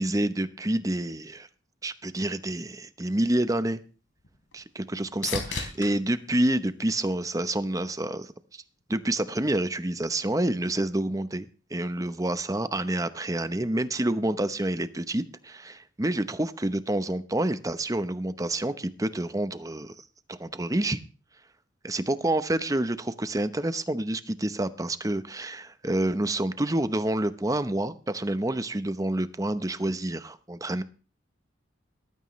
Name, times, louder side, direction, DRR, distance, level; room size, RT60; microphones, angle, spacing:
voice 1, 0.0-1.5 1.8-3.8 4.5-8.6 8.9-11.5 11.7-19.9 20.3-21.0 21.8-30.8, right 1 dB, 20° right, 0.9 m, -28 dB
sound 1, 3.5-7.7 8.2-8.8 16.7-16.8, left 4 dB, 80° left, 3.8 m, -39 dB
18.5 x 13.5 x 3.2 m
head